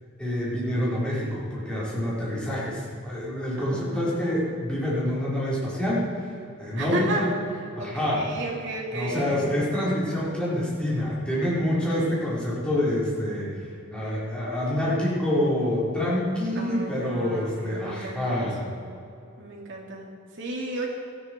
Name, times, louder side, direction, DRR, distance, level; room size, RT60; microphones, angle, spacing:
voice 1, 0.2-6.3 6.6-7.3 7.8-8.3 8.9-18.6, left 1 dB, 5° left, -8 dB, 4.5 m, -27 dB
voice 2, 3.6-4.3 6.8-7.3 7.8-9.3 16.5-18.8 19.4-20.9, right 1 dB, 55° right, -2 dB, 3.0 m, -33 dB
18.5 x 13.5 x 4.7 m, 2.6 s
head